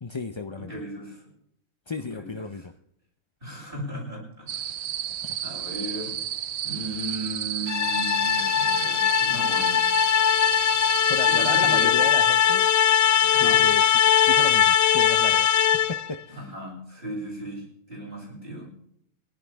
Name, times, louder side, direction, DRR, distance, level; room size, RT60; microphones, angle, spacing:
voice 1, 0.0-0.7 1.9-2.6 5.2-5.4 11.1-12.7 13.2-16.2, left 4 dB, 30° left, 8 dB, 0.6 m, -33 dB
voice 2, 0.5-1.3 2.0-2.7 3.4-4.9 5.4-6.2 6.6-9.9 11.3-12.2 13.3-13.7 16.3-18.7, right 1 dB, 40° right, -3 dB, 8.3 m, -36 dB
sound 1, 4.5-11.9, right 10 dB, 90° right, 1.2 m, -32 dB
sound 2, 7.7-16.1, left 9 dB, 55° left, 0.9 m, -20 dB
29.0 x 12.0 x 3.6 m, 0.71 s
omnidirectional pair, 1.4 m